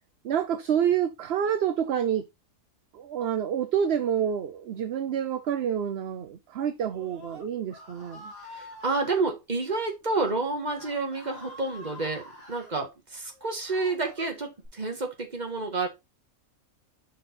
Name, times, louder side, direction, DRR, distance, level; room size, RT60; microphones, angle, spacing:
voice 1, 0.2-2.3 2.9-8.3, right 8 dB, 55° right, 0.8 m, -28 dB
Screaming, 6.8-9.2 10.0-10.3 10.7-12.7 13.3-14.7, left 1 dB, 75° right, 4.6 m, -46 dB
voice 2, 8.5-15.9, right 3 dB, 30° right, 1.8 m, -29 dB
6.7 x 5.3 x 4.0 m
omnidirectional pair, 1.4 m